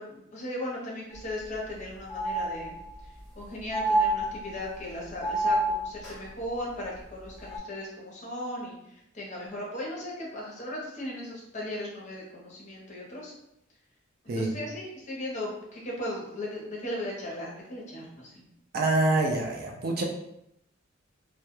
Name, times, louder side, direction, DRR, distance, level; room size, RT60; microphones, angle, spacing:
voice 1, 0.0-2.8 3.4-13.3 14.2-18.4, left 1 dB, 35° left, -3 dB, 0.6 m, -37 dB
sound 1, 1.1-1.2 1.6-1.7 2.1-3.1 3.7-4.8 5.2-6.2 7.4-7.6, right 1 dB, 5° left, 0.8 m, -28 dB
voice 2, 18.7-20.0, right 2 dB, 50° right, 1 dB, 0.4 m, -26 dB
2.2 x 2.0 x 2.9 m, 0.80 s
head